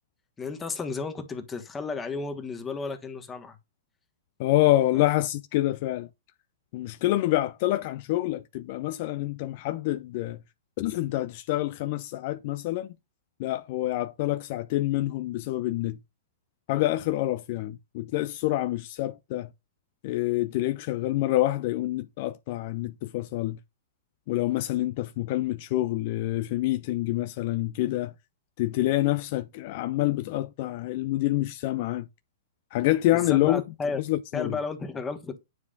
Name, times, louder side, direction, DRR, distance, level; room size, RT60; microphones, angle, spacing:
voice 1, 0.4-3.6 4.9-5.1 33.1-34.0 34.3-35.3, left 4 dB, 15° left, 1.4 m, -33 dB
voice 2, 4.4-6.1 6.7-10.4 10.8-12.9 13.4-16.0 16.7-19.5 20.0-23.6 24.3-28.1 28.6-32.1 32.7-33.6 34.0-34.6, left 16 dB, 50° left, 0.4 m, -27 dB
9.5 x 4.9 x 2.5 m
hypercardioid pair, 110°, 0 cm